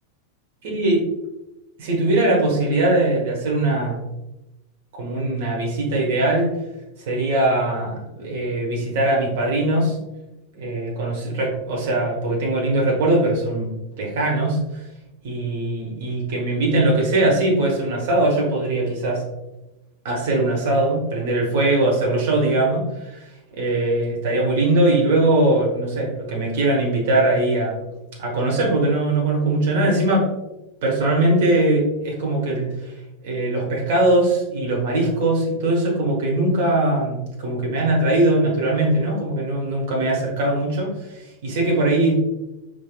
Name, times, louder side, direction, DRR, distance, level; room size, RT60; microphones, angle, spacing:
voice 1, 0.6-1.0 1.8-4.0 4.9-6.6 7.0-10.0 10.5-14.6 15.2-19.2 20.0-27.8 28.2-30.3 30.8-32.9 33.2-42.1, right 2 dB, 50° right, -2 dB, 1.3 m, -21 dB
4.9 x 3.8 x 2.3 m, 0.97 s
figure-of-eight pair, 90°, 0 cm